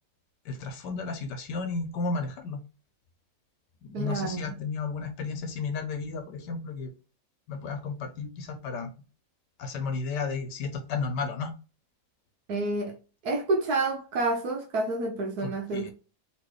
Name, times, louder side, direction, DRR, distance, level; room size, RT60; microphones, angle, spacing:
voice 1, 0.4-2.6 3.8-6.9 7.5-8.9 9.6-11.5 15.4-15.9, left 4 dB, 70° left, 1.3 m, -33 dB
voice 2, 3.9-4.5 12.5-13.0 13.2-15.9, right 2 dB, 60° right, 1.2 m, -29 dB
4.2 x 3.0 x 3.1 m
omnidirectional pair, 2.0 m